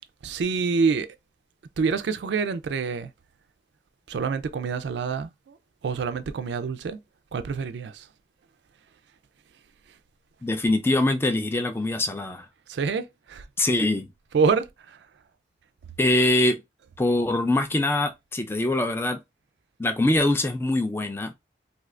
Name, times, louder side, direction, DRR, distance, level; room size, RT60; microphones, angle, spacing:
voice 1, 0.2-1.1 1.8-3.1 4.1-5.3 5.8-7.0 7.3-8.0 12.7-13.4 14.3-14.7, right 5 dB, 75° right, 0.4 m, -26 dB
voice 2, 10.4-12.5 13.6-14.1 16.0-16.6 17.0-19.2 19.8-21.3, left 2 dB, 15° left, 0.3 m, -23 dB
2.7 x 2.4 x 3.2 m
head